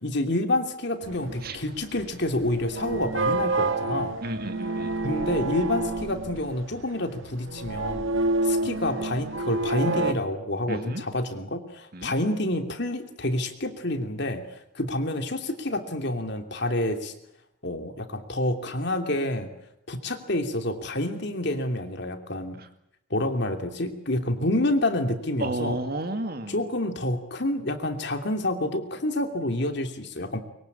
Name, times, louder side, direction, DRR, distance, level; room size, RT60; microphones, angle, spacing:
voice 1, 0.0-4.2 5.0-8.0 8.4-17.1 17.6-19.5 19.9-22.6 23.1-25.8 26.5-30.4, left 1 dB, 55° left, 6 dB, 2.9 m, -28 dB
sound 1, 1.0-10.1, right 2 dB, 70° right, 1.7 m, -28 dB
voice 2, 4.2-5.0 10.7-11.1 11.9-12.1 22.6-22.7 25.4-26.6, right 1 dB, 45° right, 8 dB, 2.3 m, -32 dB
23.5 x 23.5 x 8.6 m, 0.81 s
head